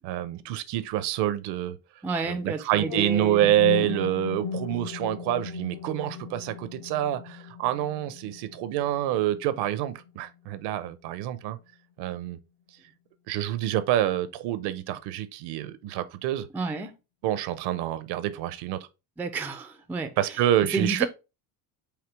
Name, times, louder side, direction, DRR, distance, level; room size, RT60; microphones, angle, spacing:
voice 1, 0.0-1.8 2.2-11.6 12.0-12.4 13.3-16.5 17.2-18.9 20.2-21.1, right 12 dB, 60° right, 0.6 m, -27 dB
voice 2, 2.0-3.5 3.8-3.9 16.5-16.9 19.2-20.4 20.7-21.1, right 3 dB, 5° right, 0.3 m, -31 dB
sound 1, 2.8-10.8, left 9 dB, 65° left, 0.9 m, -38 dB
5.0 x 2.8 x 3.2 m
supercardioid pair, 95°, 46 cm